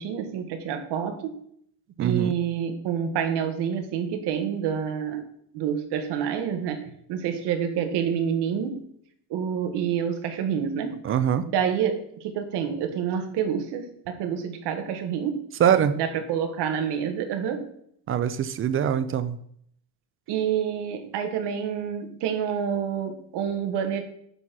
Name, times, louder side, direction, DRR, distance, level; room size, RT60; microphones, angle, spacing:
voice 1, 0.0-1.4 2.0-5.3 5.5-8.8 9.3-11.0 11.5-15.5 16.0-17.7 20.3-24.0, right 8 dB, 65° right, 7 dB, 1.5 m, -28 dB
voice 2, 2.0-2.3 11.0-11.5 15.6-16.0 18.1-19.4, right 9 dB, 30° right, 13 dB, 0.4 m, -23 dB
8.8 x 4.2 x 6.0 m, 0.67 s
cardioid pair, 150°, 45 cm